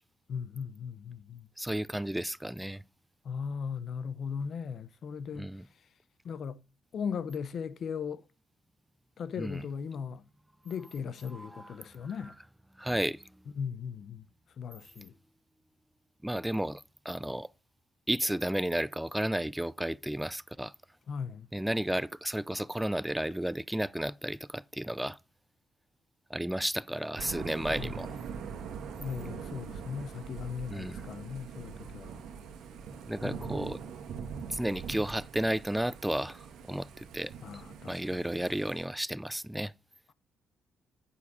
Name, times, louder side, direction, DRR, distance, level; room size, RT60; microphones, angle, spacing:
voice 1, 0.3-1.5 3.2-5.5 6.2-6.6 6.9-8.2 9.2-10.2 10.6-12.3 13.6-14.2 14.6-15.1 21.1-21.5 27.8-27.9 29.0-32.1 33.2-33.6 37.4-38.2, left 6 dB, 60° left, 0.7 m, -38 dB
voice 2, 1.6-2.8 5.3-5.7 9.4-9.6 11.3-11.8 12.2-12.3 12.8-13.2 16.2-17.5 18.1-20.7 21.5-25.2 26.3-28.2 30.7-31.0 33.1-33.8 34.5-37.3 37.9-39.7, right 1 dB, 5° right, 0.4 m, -33 dB
Thunder / Rain, 27.2-38.8, right 6 dB, 80° right, 1.6 m, -43 dB
8.4 x 7.0 x 4.8 m
cardioid pair, 90°, 0 cm